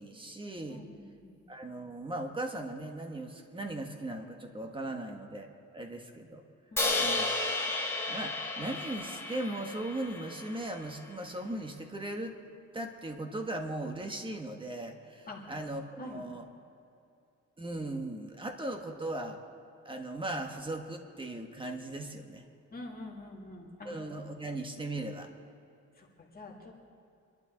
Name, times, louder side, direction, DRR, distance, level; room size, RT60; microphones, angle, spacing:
voice 1, 0.0-0.8 1.5-6.4 6.9-7.3 8.1-12.4 12.7-16.5 17.6-19.4 19.8-22.5 23.8-25.3, right 1 dB, 15° right, 4 dB, 1.4 m, -38 dB
voice 2, 0.7-1.3 6.7-7.0 15.3-15.5 16.0-16.2 22.7-23.9 26.0-26.1 26.3-26.8, left 2 dB, 30° left, -2 dB, 2.3 m, -46 dB
Crash cymbal, 6.8-11.0, left 2 dB, 10° left, 1.6 m, -33 dB
25.0 x 11.5 x 3.9 m, 2.6 s
wide cardioid pair, 140°, 30 cm